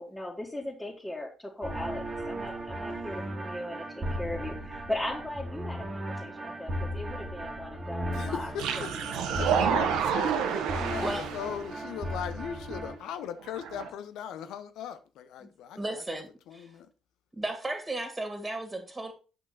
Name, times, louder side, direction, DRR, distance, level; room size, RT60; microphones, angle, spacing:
voice 1, 0.0-8.5 8.8-9.1, left 1 dB, 10° left, 2.3 m, -38 dB
sound 1, 1.6-13.0, right 1 dB, 35° right, 1.9 m, -36 dB
voice 2, 2.9-3.3 8.1-16.9, left 9 dB, 65° left, 0.8 m, -39 dB
sound 2, 8.6-11.8 12.7-12.8 13.4-13.9, right 7 dB, 70° right, 1.2 m, -29 dB
voice 3, 15.7-16.7 17.4-19.1, right 1 dB, 20° right, 2.5 m, -35 dB
8.7 x 6.0 x 4.1 m
figure-of-eight pair, 45°, 0 cm